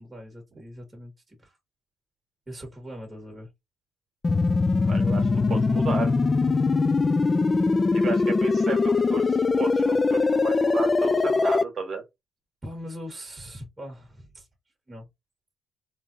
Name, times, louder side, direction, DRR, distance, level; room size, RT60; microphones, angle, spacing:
voice 1, 0.0-1.6 2.5-3.5 5.3-5.7 12.6-14.5 14.9-15.1, equal, 20° right, 1.7 m, -41 dB
sound 1, 4.2-11.6, left 3 dB, 30° left, 0.3 m, -22 dB
voice 2, 4.9-6.1 7.9-12.0, right 5 dB, 50° right, 1.6 m, -33 dB
3.6 x 2.6 x 2.7 m
cardioid pair, 90°, 0 cm